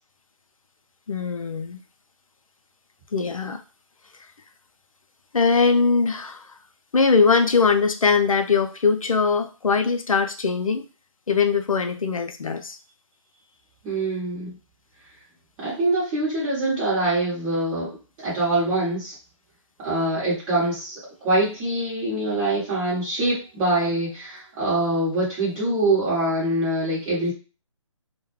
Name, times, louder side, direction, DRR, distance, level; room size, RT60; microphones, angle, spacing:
voice 1, 1.1-1.8 3.1-3.6 5.3-6.5 6.9-10.8 11.3-12.8, left 5 dB, 85° left, 7 dB, 0.4 m, -21 dB
voice 2, 13.8-14.5 15.6-19.1 19.8-27.3, right 2 dB, 15° right, -8 dB, 1.0 m, -24 dB
2.2 x 2.2 x 3.0 m, 0.33 s
figure-of-eight pair, 150°, 17 cm